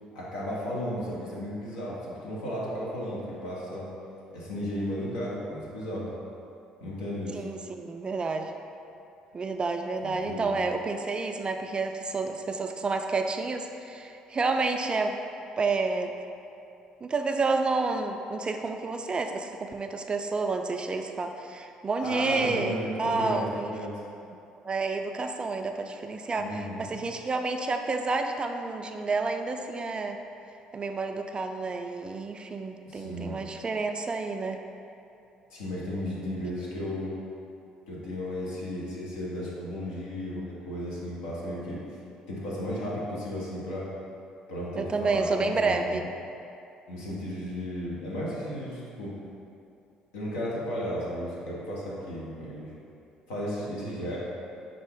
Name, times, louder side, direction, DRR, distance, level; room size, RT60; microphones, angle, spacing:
voice 1, 0.1-3.9 4.3-6.1 6.8-7.4 10.0-10.5 22.0-23.9 26.4-26.9 32.8-33.4 35.5-37.1 37.9-41.8 42.3-43.9 44.5-46.0 46.9-49.1 50.1-52.7 53.3-54.2, equal, 80° left, -6 dB, 1.0 m, -34 dB
voice 2, 7.3-8.5 9.3-15.2 15.6-16.2 17.0-23.7 24.6-30.2 30.7-34.6 44.8-46.0, right 3 dB, 30° right, 5 dB, 0.3 m, -30 dB
5.3 x 2.5 x 3.5 m, 2.6 s
hypercardioid pair, 55°, 3 cm